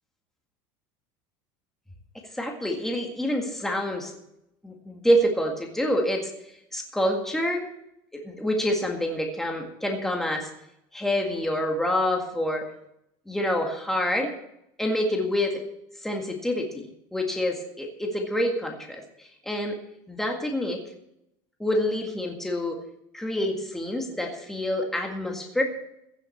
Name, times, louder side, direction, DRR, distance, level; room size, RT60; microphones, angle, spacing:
voice 1, 2.3-4.1 4.6-6.3 6.7-7.7 8.1-10.5 10.9-12.6 13.3-14.3 14.8-15.6 16.0-19.8 20.1-20.8 21.6-22.8 23.1-25.6, equal, 5° left, 1 dB, 1.9 m, -27 dB
15.5 x 7.6 x 7.3 m, 0.79 s
cardioid pair, 155°, 12 cm